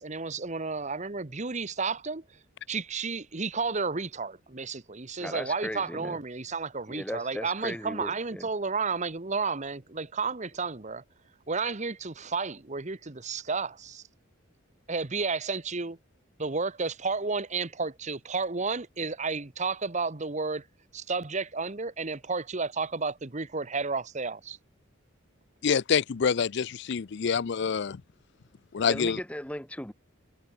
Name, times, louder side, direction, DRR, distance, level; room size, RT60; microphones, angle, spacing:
voice 1, 0.0-2.2 2.7-11.0 11.5-14.0 14.9-16.0 16.4-20.7 20.9-24.6, right 4 dB, 35° right, 1.1 m, -32 dB
voice 2, 5.2-6.2 6.9-8.5 28.9-29.9, left 1 dB, 5° left, 1.1 m, -37 dB
voice 3, 25.6-28.0 28.7-29.2, left 6 dB, 60° left, 0.5 m, -26 dB
head